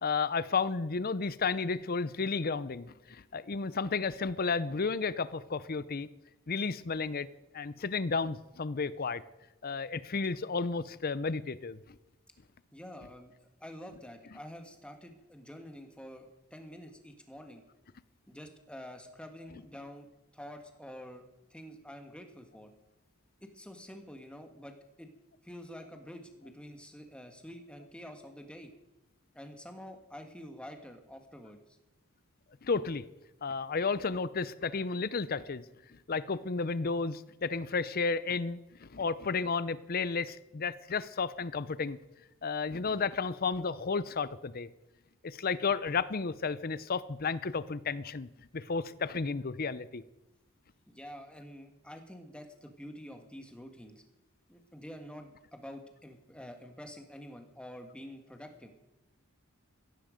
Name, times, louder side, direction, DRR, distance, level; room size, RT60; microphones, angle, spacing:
voice 1, 0.0-6.1 6.5-7.3 7.5-9.2 9.6-11.8 32.6-33.0 33.4-35.6 36.1-42.0 42.4-44.7 45.2-48.3 48.5-50.0, left 4 dB, 45° left, 16 dB, 0.6 m, -32 dB
voice 2, 12.7-13.3 13.6-16.2 16.5-17.6 18.3-20.1 20.3-21.2 21.5-22.7 23.4-25.1 25.4-28.7 29.3-31.6 50.9-54.0 54.5-58.7, equal, 5° left, 5 dB, 1.6 m, -47 dB
15.5 x 15.0 x 5.1 m, 0.94 s
head